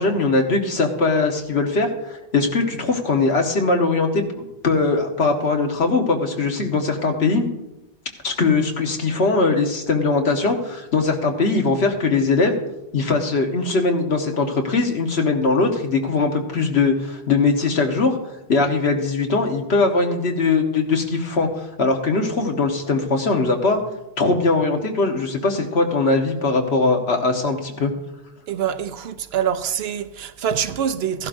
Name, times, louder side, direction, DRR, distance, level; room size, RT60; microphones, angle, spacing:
voice 1, 0.0-7.5 8.2-12.6 12.9-23.8 24.2-27.9, left 3 dB, 75° left, 1.5 m, -21 dB
voice 2, 28.5-31.3, right 8 dB, 70° right, 0.9 m, -25 dB
15.0 x 11.5 x 2.6 m
omnidirectional pair, 1.1 m